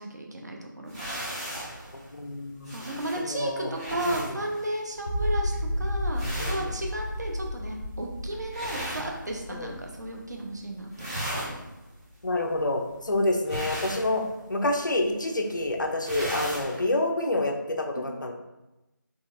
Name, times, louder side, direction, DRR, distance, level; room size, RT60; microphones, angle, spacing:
voice 1, 0.0-1.5 2.7-11.5 14.1-14.4 18.0-18.1, right 1 dB, 55° right, 0 dB, 0.8 m, -34 dB
sound 1, 0.9-9.8 10.1-10.6 10.8-16.8, equal, 15° right, 0.9 m, -37 dB
voice 2, 2.2-2.7 3.3-3.7 4.1-4.2 6.4-6.6 9.5-9.7 12.2-14.2 14.5-18.3, left 2 dB, 65° left, 3 dB, 0.6 m, -28 dB
sound 2, 5.1-11.1, left 1 dB, 15° left, 0.4 m, -32 dB
4.1 x 3.3 x 2.5 m, 0.98 s
figure-of-eight pair, 165°, 11 cm